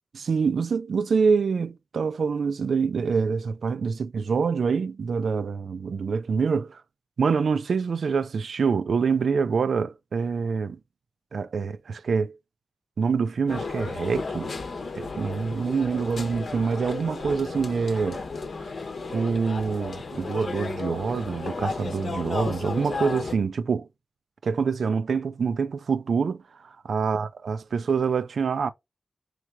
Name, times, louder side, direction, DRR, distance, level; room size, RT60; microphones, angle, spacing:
voice 1, 0.1-6.8 7.2-10.8 11.3-12.4 13.0-14.5 15.0-18.2 19.1-23.9 24.4-28.7, right 5 dB, 90° right, 0.3 m, -26 dB
sound 1, 13.5-23.3, left 3 dB, 70° left, 0.8 m, -34 dB
3.7 x 3.2 x 3.3 m
wide cardioid pair, 105°, 0 cm